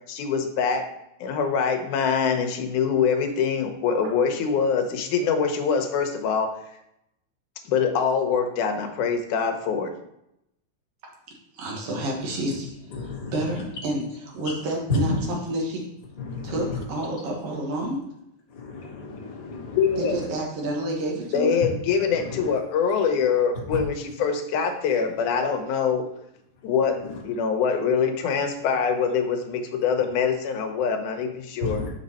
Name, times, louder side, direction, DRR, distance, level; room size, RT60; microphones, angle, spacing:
voice 1, 0.1-0.9 1.2-6.6 7.7-9.9 19.8-20.2 21.3-26.1 26.6-27.0 27.2-31.8, left 6 dB, 75° left, 5 dB, 2.2 m, -24 dB
voice 2, 11.5-12.7 13.0-15.8 16.4-18.0 19.9-21.6, right 1 dB, 55° right, -1 dB, 1.9 m, -29 dB
voice 3, 12.9-13.3 14.9-15.2 16.2-16.6 18.5-19.8 22.2-22.4 31.6-31.9, left 3 dB, 30° left, -5 dB, 0.6 m, -30 dB
5.8 x 5.3 x 4.1 m, 0.82 s
omnidirectional pair, 3.8 m